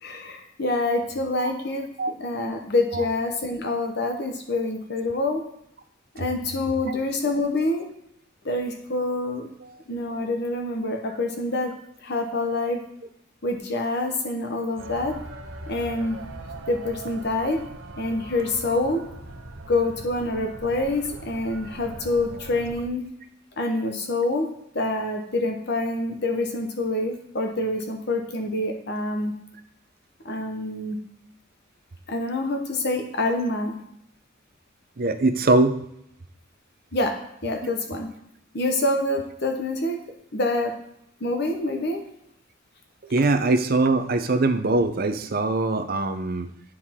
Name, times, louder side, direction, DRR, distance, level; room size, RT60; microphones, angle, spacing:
voice 1, 0.0-1.9 2.2-5.4 6.1-7.9 8.4-9.5 9.9-11.7 12.0-12.8 13.4-15.2 15.7-16.2 16.7-17.6 18.0-19.0 19.6-23.0 23.6-24.5 24.7-29.3 30.2-31.0 32.1-33.8 36.9-37.1 37.4-38.1 38.5-40.0 40.3-40.7 41.2-42.0, left 2 dB, 55° left, 3 dB, 1.0 m, -26 dB
sound 1, 14.8-22.9, right 2 dB, 90° right, 0.9 m, -40 dB
voice 2, 35.0-35.8 43.0-46.5, right 2 dB, 45° right, 8 dB, 0.6 m, -22 dB
9.8 x 4.7 x 3.7 m, 0.76 s
head